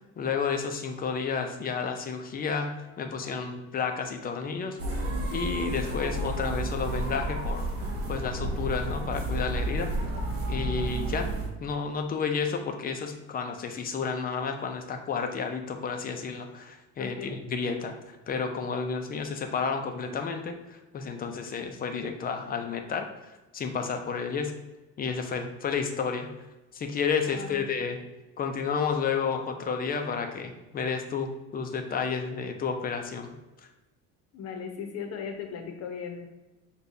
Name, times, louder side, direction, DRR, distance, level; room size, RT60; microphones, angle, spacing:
voice 1, 0.2-2.7 3.0-5.0 5.3-7.7 8.1-9.9 10.5-11.3 11.6-23.1 23.5-24.6 25.0-26.3 26.7-28.0 28.4-33.3, left 5 dB, 30° left, 5 dB, 0.4 m, -31 dB
sound 1, 4.8-11.5, right 1 dB, 85° right, 1.3 m, -31 dB
voice 2, 17.0-17.4 27.3-27.7 34.3-36.3, left 6 dB, 50° left, 4 dB, 0.7 m, -38 dB
6.6 x 2.3 x 2.6 m, 1.1 s
cardioid pair, 155°, 34 cm